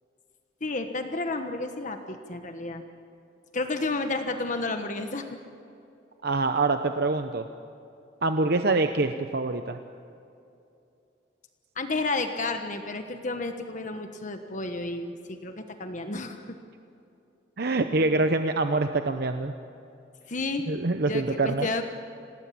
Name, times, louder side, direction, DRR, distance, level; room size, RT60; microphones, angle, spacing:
voice 1, 0.6-2.8 3.5-5.4 11.8-16.4 20.3-20.7 21.0-21.8, left 3 dB, 45° left, 6 dB, 1.3 m, -31 dB
voice 2, 6.2-7.5 8.2-9.8 17.6-19.5 20.7-21.7, right 3 dB, 60° right, 7 dB, 0.8 m, -25 dB
27.0 x 18.5 x 8.6 m, 2.6 s
head